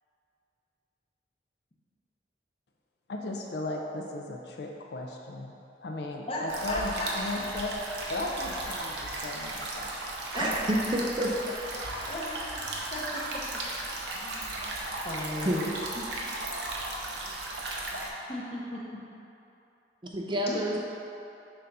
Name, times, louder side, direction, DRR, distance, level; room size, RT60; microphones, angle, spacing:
voice 1, 3.1-5.5 5.8-7.8 8.1-9.9, left 2 dB, 60° left, 1 dB, 0.5 m, -35 dB
voice 2, 6.3-7.1 8.7-8.8 10.3-10.5 12.0-13.6 14.1-14.7 15.0-16.1 18.3-19.0 20.5-20.6, left 1 dB, 30° left, -4 dB, 0.8 m, -37 dB
sound 1, 6.5-18.1, right 2 dB, 70° right, 0.7 m, -36 dB
voice 3, 10.3-11.3 11.6-11.8 15.4-15.6 20.1-20.8, equal, 25° right, -1 dB, 0.5 m, -29 dB
6.7 x 2.6 x 5.4 m, 2.8 s
head